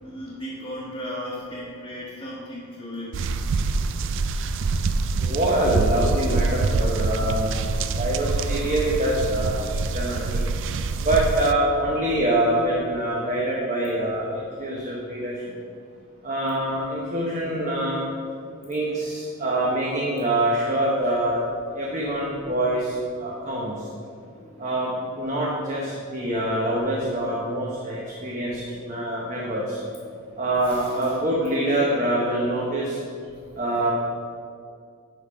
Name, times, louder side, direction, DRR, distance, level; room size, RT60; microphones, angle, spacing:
voice 1, 0.0-3.2 24.2-24.7 25.3-25.4 30.6-31.0, equal, 20° left, -8 dB, 1.2 m, -36 dB
sound 1, 3.1-11.5, right 3 dB, 55° right, 0.3 m, -25 dB
voice 2, 5.2-7.6 7.8-10.5 11.0-15.4 16.2-18.0 18.6-21.4 21.7-23.8 24.6-29.8 30.4-33.0 33.5-33.9, right 1 dB, 35° right, -4 dB, 0.9 m, -25 dB
11.0 x 3.7 x 5.0 m, 2.3 s
head